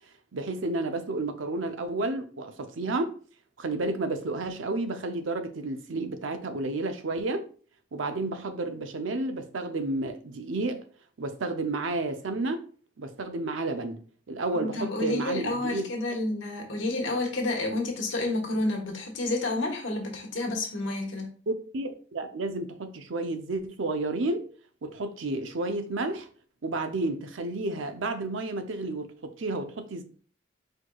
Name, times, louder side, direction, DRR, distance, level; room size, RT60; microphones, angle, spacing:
voice 1, 0.3-3.2 3.6-7.5 7.9-10.8 11.2-12.7 13.0-14.0 14.3-15.9 21.5-24.4 24.8-26.3 26.6-30.0, right 2 dB, 90° right, 0.6 m, -31 dB
voice 2, 14.5-21.3, left 2 dB, 80° left, 1.3 m, -30 dB
4.6 x 4.3 x 2.3 m
head